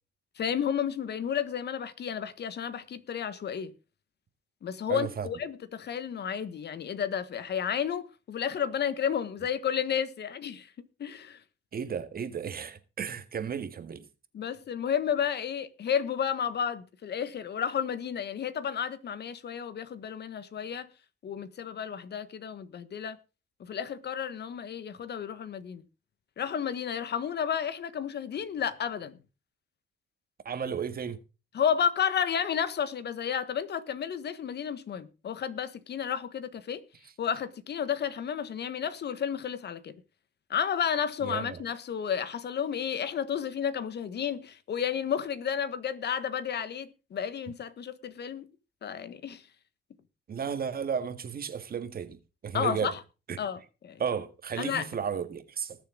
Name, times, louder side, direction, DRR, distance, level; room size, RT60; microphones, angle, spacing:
voice 1, 0.4-3.7 4.6-10.7 11.0-11.4 14.3-20.9 21.2-23.2 23.6-25.8 26.4-29.2 31.5-36.8 37.2-40.0 40.5-48.5 48.8-49.4 52.5-53.0 53.4-54.0 54.6-54.9, left 8 dB, 60° left, 1.4 m, -32 dB
voice 2, 4.9-5.3 11.7-14.1 30.5-31.2 41.2-41.6 50.3-52.9 53.3-53.4 54.0-55.8, right 7 dB, 50° right, 1.8 m, -33 dB
20.0 x 7.3 x 3.9 m
cardioid pair, 90°, 20 cm